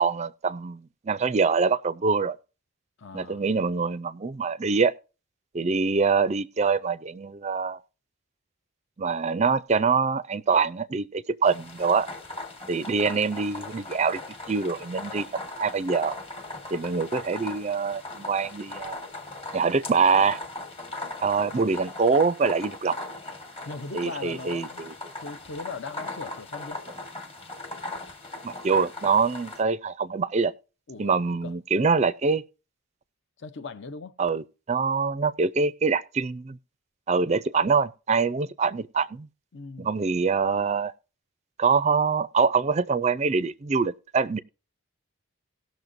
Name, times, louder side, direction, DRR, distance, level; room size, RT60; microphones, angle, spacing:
voice 1, 0.0-2.4 3.1-4.9 5.5-7.8 9.0-12.1 12.7-14.2 14.5-16.2 16.7-19.0 19.5-20.4 21.2-23.0 23.9-24.9 28.4-30.5 31.0-32.4 34.2-36.6 37.1-39.3 39.8-40.9 41.6-44.4, right 5 dB, 30° right, 0.4 m, -24 dB
voice 2, 3.0-3.4 23.7-24.9 25.2-26.8 30.9-31.5 33.4-34.2 39.5-39.9, left 4 dB, 55° left, 0.6 m, -39 dB
sound 1, 11.4-29.6, left 2 dB, 25° left, 1.2 m, -39 dB
19.0 x 6.4 x 2.6 m
head